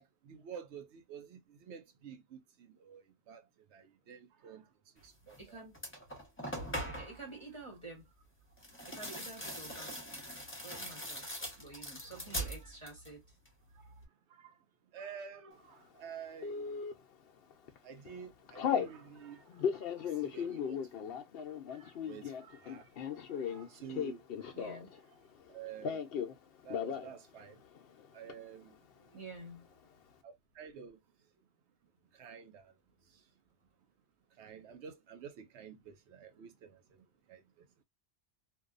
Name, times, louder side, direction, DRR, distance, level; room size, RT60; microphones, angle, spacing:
voice 1, 0.0-3.4 3.7-4.7 5.0-5.6 6.9-7.1 11.0-11.1 11.7-12.7 13.7-13.9 14.3-14.6 14.9-16.8 17.8-21.2 21.7-24.6 24.9-25.0 25.5-26.0 26.6-27.6 28.1-28.7 30.2-31.0 32.1-32.7 33.1-33.2 34.4-37.7, right 7 dB, 75° right, 0.9 m, -51 dB
sound 1, 5.3-5.4 5.7-7.2 8.6-13.2 13.5-14.1, equal, 10° left, 0.9 m, -42 dB
voice 2, 5.4-5.8 6.9-8.1 8.8-11.3 11.5-13.4 22.9-23.6 24.5-24.9 28.7-29.9, right 3 dB, 30° right, 1.0 m, -50 dB
Telephone, 16.4-16.9 17.5-17.8 18.0-18.9 19.5-25.0 25.2-26.3 26.6-27.1 27.4-27.5 27.7-28.3, left 7 dB, 60° left, 0.8 m, -36 dB
2.6 x 2.3 x 2.4 m
omnidirectional pair, 1.2 m